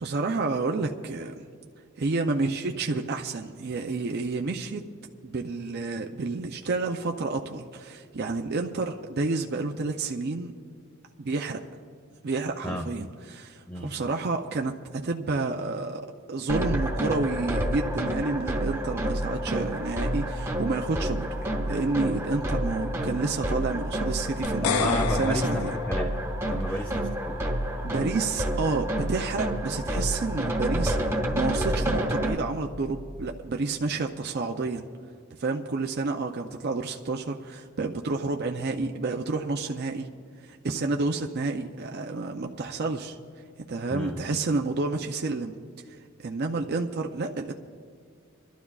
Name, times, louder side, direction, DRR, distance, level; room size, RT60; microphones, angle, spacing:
voice 1, 0.0-1.3 2.0-4.9 5.2-10.5 11.2-11.6 12.2-25.7 26.7-26.8 27.8-34.9 35.3-40.1 40.4-43.2 43.6-45.5 45.9-47.5, right 3 dB, 50° right, 3 dB, 0.5 m, -30 dB
sound 1, 16.5-32.4, right 1 dB, 10° right, 1.3 m, -29 dB
sound 2, 24.4-26.7, left 9 dB, 85° left, 0.3 m, -31 dB
voice 2, 24.6-26.1 26.5-27.5 43.9-44.2, left 1 dB, 5° left, 4 dB, 0.4 m, -32 dB
27.5 x 12.0 x 2.4 m, 2.1 s
head